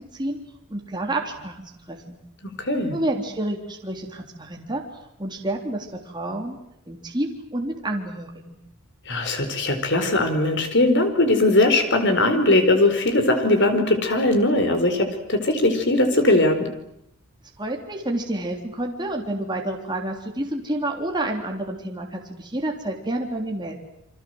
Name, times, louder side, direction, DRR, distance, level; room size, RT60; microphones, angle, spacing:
voice 1, 0.7-2.2 2.9-4.8 5.2-6.6 6.9-8.6 17.6-23.7, right 1 dB, 20° right, 1 dB, 3.5 m, -29 dB
voice 2, 2.4-3.0 9.1-16.7, left 2 dB, 55° left, 8 dB, 4.8 m, -20 dB
29.0 x 24.5 x 8.0 m, 0.78 s
head